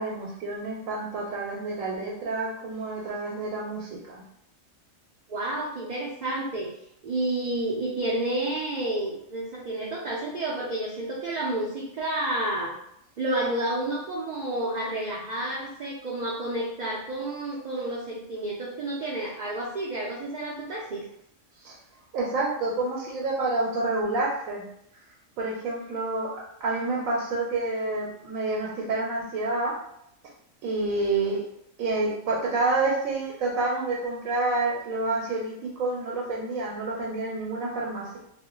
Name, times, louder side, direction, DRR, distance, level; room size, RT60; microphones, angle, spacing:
voice 1, 0.0-4.2 21.6-21.8 22.1-24.6 25.4-26.3 26.6-29.7 30.6-31.4 31.8-38.2, right 2 dB, 90° right, -3 dB, 1.0 m, -28 dB
voice 2, 5.3-6.7 7.0-12.7 13.2-21.0, right 1 dB, 70° right, -4 dB, 0.4 m, -30 dB
2.5 x 2.1 x 3.6 m, 0.74 s
omnidirectional pair, 1.4 m